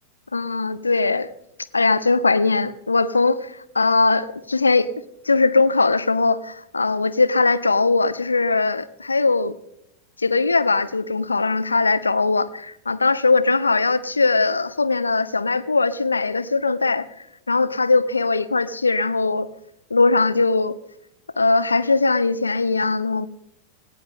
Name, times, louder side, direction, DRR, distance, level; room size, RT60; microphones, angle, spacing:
voice 1, 0.3-1.3 1.7-4.9 5.2-9.5 10.2-17.1 17.5-19.5 19.9-20.7 21.4-23.3, left 3 dB, 80° left, 0.6 m, -20 dB
18.0 x 18.0 x 3.8 m
figure-of-eight pair, 90°, 0 cm